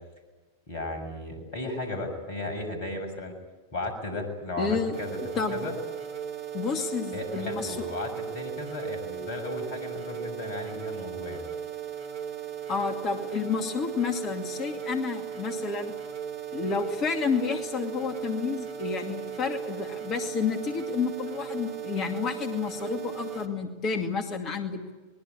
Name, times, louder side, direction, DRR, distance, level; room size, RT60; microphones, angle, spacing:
voice 1, 0.7-3.3 3.7-5.2 5.5-5.7 7.1-11.4, left 2 dB, 50° left, 7 dB, 7.0 m, -35 dB
voice 2, 4.6-4.9 5.4-5.6 6.5-7.8 12.7-15.9 16.5-24.8, left 5 dB, 30° left, 6 dB, 2.4 m, -30 dB
sound 1, 4.9-23.5, right 8 dB, 40° right, 2.5 m, -37 dB
24.0 x 21.5 x 8.9 m, 1.2 s
figure-of-eight pair, 90°, 0 cm